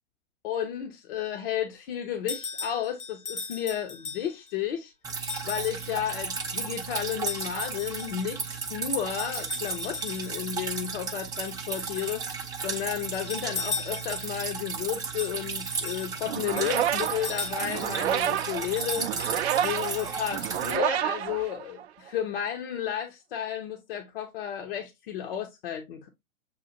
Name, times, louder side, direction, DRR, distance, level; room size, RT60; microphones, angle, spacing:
voice 1, 0.4-4.9 5.4-12.2 12.6-19.1 19.6-26.1, left 10 dB, 45° left, 0.8 m, -32 dB
sound 1, 2.3-4.5 5.3-5.9 7.3-8.3 9.2-10.6 11.4-12.2 13.0-14.4 15.2-18.0 18.6-20.4, left 4 dB, 70° left, 2.2 m, -38 dB
Drip, 5.0-20.8, right 5 dB, 10° right, 0.6 m, -35 dB
sound 2, 16.2-22.1, right 11 dB, 50° right, 0.5 m, -29 dB
7.2 x 2.4 x 2.7 m
figure-of-eight pair, 105°, 41 cm